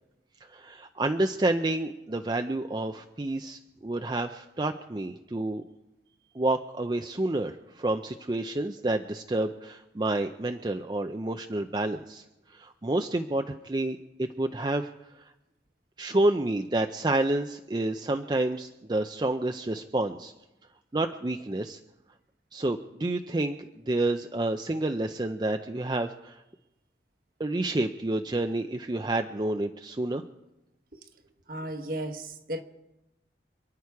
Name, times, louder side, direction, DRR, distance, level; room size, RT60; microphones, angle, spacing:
voice 1, 0.5-5.6 6.3-12.2 12.5-14.9 15.1-15.3 16.0-20.3 20.9-21.8 22.5-26.4 27.4-30.2, right 2 dB, 25° right, 0.5 m, -29 dB
voice 2, 31.5-32.6, right 1 dB, 50° right, 1.2 m, -34 dB
27.5 x 9.9 x 4.7 m
head